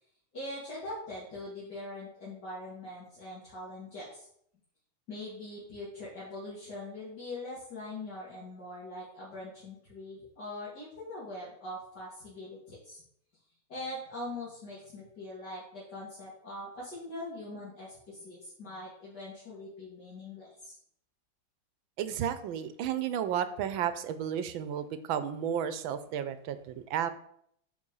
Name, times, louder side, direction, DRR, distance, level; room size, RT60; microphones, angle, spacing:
voice 1, 0.3-4.3 5.1-13.0 13.7-20.8, left 1 dB, 55° left, -9 dB, 3.1 m, -42 dB
voice 2, 22.0-27.1, right 9 dB, 75° right, 12 dB, 1.5 m, -32 dB
10.0 x 4.2 x 5.6 m, 0.69 s
omnidirectional pair, 2.2 m